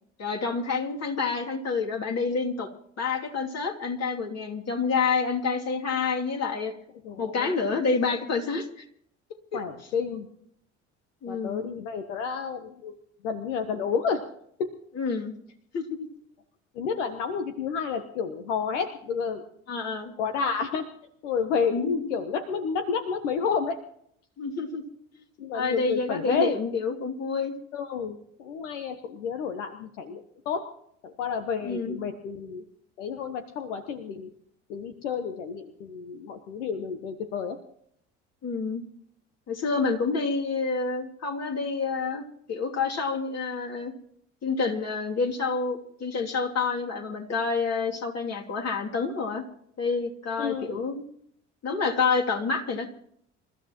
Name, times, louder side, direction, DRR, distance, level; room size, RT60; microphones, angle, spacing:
voice 1, 0.2-2.7 3.0-6.7 7.2-8.8 9.5-9.6 11.2-11.6 14.9-15.3 15.7-16.1 19.7-20.1 21.7-21.9 24.4-24.8 25.5-27.5 31.6-32.0 38.4-38.8 39.5-43.9 44.4-49.4 49.8-51.0 51.6-52.9, left 4 dB, 45° left, 1 dB, 2.9 m, -28 dB
voice 2, 7.0-7.5 9.5-10.3 11.3-12.9 13.2-14.2 16.7-19.4 20.2-20.8 21.2-23.8 25.4-26.5 27.7-30.6 31.0-32.6 33.0-34.3 34.7-37.6 50.4-50.8, left 6 dB, 75° left, 8 dB, 1.2 m, -30 dB
27.5 x 14.0 x 3.1 m, 0.68 s
figure-of-eight pair, 55°, 37 cm